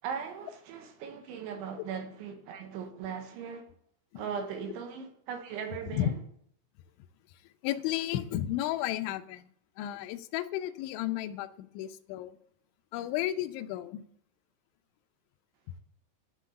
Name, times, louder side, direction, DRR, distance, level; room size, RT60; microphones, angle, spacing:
voice 1, 0.0-3.7 4.2-6.2, right 7 dB, 75° right, 3.5 m, -39 dB
voice 2, 7.6-9.5 9.8-11.5 11.7-12.3 12.9-14.0, left 13 dB, 80° left, 3.0 m, -33 dB
11.0 x 6.2 x 8.4 m
omnidirectional pair, 5.8 m